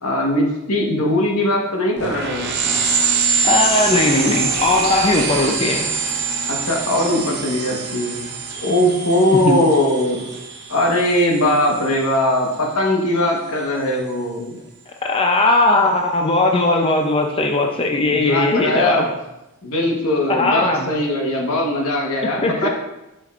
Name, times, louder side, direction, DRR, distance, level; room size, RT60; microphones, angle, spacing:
voice 1, 0.0-2.6 6.5-8.2 8.6-10.2 10.7-14.6 18.1-19.1 19.6-22.7, left 1 dB, 90° left, 0 dB, 1.2 m, -20 dB
sound 1, 2.0-12.1, right 5 dB, 50° right, 0.9 m, -24 dB
voice 2, 3.4-5.9 9.3-9.6 15.0-19.1 20.3-20.9 22.4-22.7, left 2 dB, 25° left, 2 dB, 0.5 m, -18 dB
7.4 x 5.1 x 2.4 m, 0.94 s
head